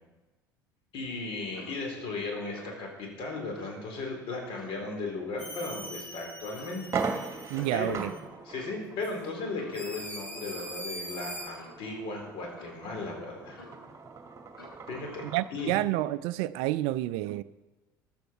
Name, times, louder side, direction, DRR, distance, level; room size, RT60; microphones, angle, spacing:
voice 1, 0.9-6.9 7.4-8.1 8.4-13.6 14.9-15.2 15.5-15.8, left 3 dB, 50° left, 1 dB, 4.3 m, -36 dB
Clock, 1.5-1.8 2.5-2.8 3.5-3.8 4.5-4.9 5.5-5.8 6.5-6.8 7.5-7.9 8.5-8.9 9.5-9.9 10.6-10.8 11.5-11.8 12.6-12.8 13.5-13.9 14.6-14.8 15.6-15.8, left 2 dB, 85° left, 3.9 m, -50 dB
sound 1, 5.4-8.2 9.0-9.1 9.7-11.5, equal, 15° left, 3.8 m, -42 dB
sound 2, 5.9-6.0 6.4-6.5 6.8-15.5, right 5 dB, 25° right, 1.8 m, -40 dB
voice 2, 7.5-8.1 15.3-17.4, right 16 dB, 55° right, 17 dB, 0.4 m, -29 dB
14.5 x 12.0 x 4.7 m, 1.2 s
figure-of-eight pair, 65°, 11 cm